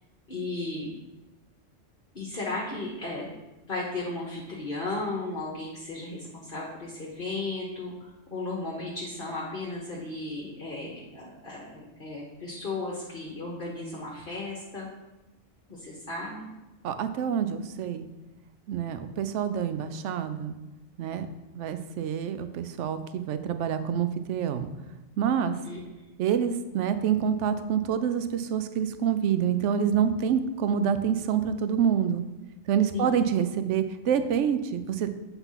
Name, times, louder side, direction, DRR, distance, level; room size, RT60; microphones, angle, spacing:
voice 1, 0.3-0.9 2.1-3.3 3.6-14.9 15.7-16.5 25.6-25.8 32.9-33.2, left 2 dB, 45° left, -3 dB, 1.3 m, -35 dB
voice 2, 16.8-18.1 18.7-20.6 21.0-21.3 21.6-24.7 25.2-25.6 26.2-32.2 32.7-35.1, right 8 dB, 75° right, 10 dB, 0.9 m, -27 dB
8.0 x 4.0 x 5.7 m, 1.1 s
omnidirectional pair, 1.3 m